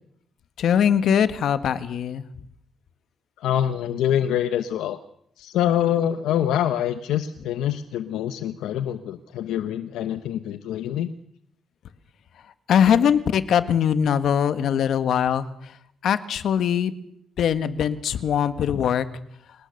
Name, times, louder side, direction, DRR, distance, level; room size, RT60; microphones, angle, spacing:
voice 1, 0.6-2.2 12.7-15.5 16.0-16.9 17.4-19.0, left 8 dB, 70° left, 11 dB, 1.6 m, -21 dB
voice 2, 3.4-5.0 5.4-11.1, left 10 dB, 90° left, 10 dB, 1.0 m, -25 dB
27.0 x 18.5 x 6.7 m, 0.72 s
cardioid pair, 90°, 0 cm